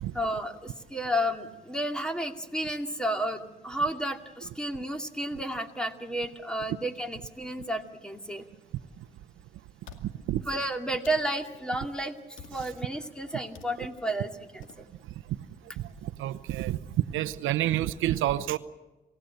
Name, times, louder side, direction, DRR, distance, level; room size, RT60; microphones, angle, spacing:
voice 1, 0.1-8.4 10.5-14.9, right 1 dB, 5° left, 5 dB, 2.4 m, -32 dB
sound 1, 9.0-9.1 9.8-10.1 11.0-11.2 12.4-12.7 13.5-13.7 14.6-14.8, left 8 dB, 80° left, 2.3 m, -47 dB
voice 2, 10.0-10.4 16.0-16.8 17.1-18.6, right 13 dB, 85° right, 14 dB, 0.8 m, -28 dB
28.5 x 16.5 x 7.9 m, 1.1 s
cardioid pair, 90°, 20 cm